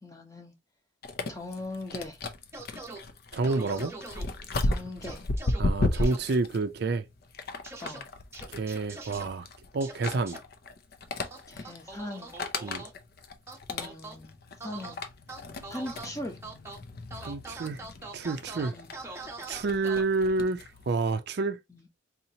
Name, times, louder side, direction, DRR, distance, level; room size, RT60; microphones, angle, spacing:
voice 1, 0.0-0.5 1.3-2.2 4.6-5.2 7.8-8.1 11.5-12.3 13.7-15.0 15.7-16.4 18.6-18.9 21.7-21.9, left 1 dB, 15° left, 0.8 m, -40 dB
sound 1, 1.0-20.9, left 2 dB, 50° left, 0.6 m, -35 dB
sound 2, 2.5-3.0 3.4-4.2 5.0-5.6 5.9-6.2 7.6-8.0 8.3-9.2 9.8-10.4 11.2-12.9 13.5-14.2 14.6-14.9 15.3-16.1 16.4-16.8 17.1-20.0, right 3 dB, 15° right, 0.7 m, -42 dB
voice 2, 3.3-3.9 5.6-7.1 8.5-9.5 9.7-10.4 12.6-12.8 17.2-17.8 18.1-18.8 19.5-21.6, right 3 dB, 55° right, 0.4 m, -29 dB
4.0 x 2.9 x 2.7 m
head